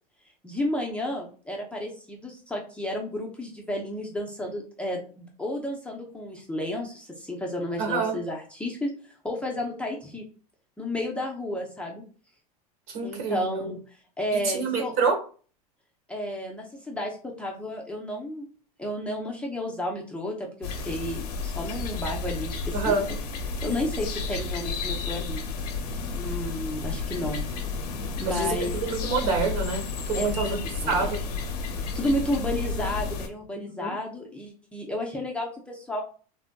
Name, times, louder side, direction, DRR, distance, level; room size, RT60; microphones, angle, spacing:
voice 1, 0.4-10.2 10.8-12.0 13.0-13.8 14.2-14.9 16.1-18.4 18.8-22.9 23.6-25.4 26.1-27.4 28.2-28.8 30.1-31.1 31.8-36.0, left 1 dB, 5° left, -2 dB, 0.6 m, -32 dB
voice 2, 7.8-8.1 12.9-13.7 14.3-15.1 22.7-23.1 28.3-30.6 30.8-31.2 33.5-33.9, right 4 dB, 65° right, 2 dB, 1.3 m, -27 dB
sound 1, 20.6-33.3, left 4 dB, 85° left, 0.7 m, -32 dB
3.3 x 2.5 x 2.2 m, 0.39 s
supercardioid pair, 125°, 20 cm